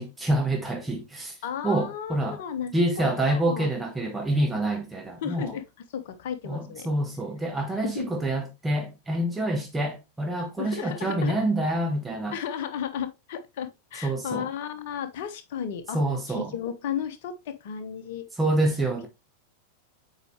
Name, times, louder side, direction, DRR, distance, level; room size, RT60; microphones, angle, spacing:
voice 1, 0.0-1.3 1.6-2.4 2.7-5.5 6.4-12.3 14.0-14.5 15.9-16.5 18.4-19.1, right 1 dB, 10° right, 1.3 m, -27 dB
voice 2, 1.4-3.7 5.2-5.6 5.9-6.9 7.8-8.2 10.6-11.4 12.3-16.0 16.3-18.3 18.8-19.1, left 8 dB, 50° left, 1.2 m, -34 dB
8.1 x 5.0 x 3.2 m
figure-of-eight pair, 90°, 0 cm